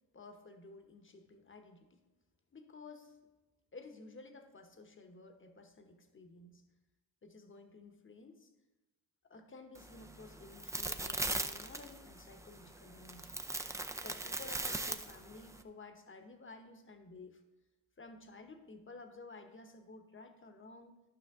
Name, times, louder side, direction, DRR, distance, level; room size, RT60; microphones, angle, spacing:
voice 1, 0.1-2.0 2.5-3.2 3.7-6.6 7.2-8.5 9.3-13.4 14.0-17.4 18.0-21.0, left 3 dB, 30° left, 6 dB, 1.1 m, -53 dB
sound 1, 9.7-15.6, right 2 dB, 5° right, 0.5 m, -40 dB
11.5 x 5.6 x 3.6 m, 1.1 s
cardioid pair, 70°, 42 cm